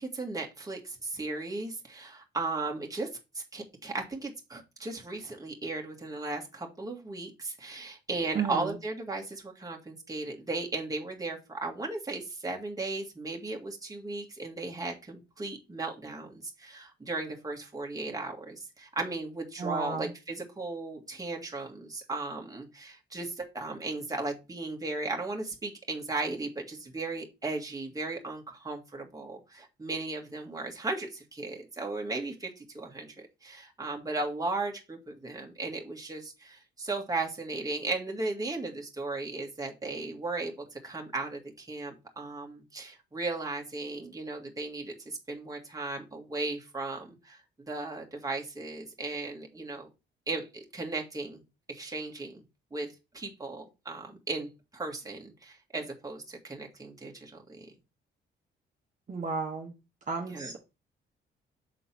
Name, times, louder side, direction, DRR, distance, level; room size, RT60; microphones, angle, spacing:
voice 1, 0.0-3.1 3.4-47.4 47.7-49.9 50.3-51.4 51.7-52.4 52.7-52.9 53.1-57.7 60.3-60.5, right 3 dB, 20° right, 1 dB, 1.9 m, -36 dB
voice 2, 8.3-8.8 19.6-20.1 59.1-59.7 60.1-60.6, right 5 dB, 40° right, 0 dB, 1.4 m, -33 dB
6.6 x 3.9 x 4.4 m, 0.26 s
cardioid pair, 90°, 20 cm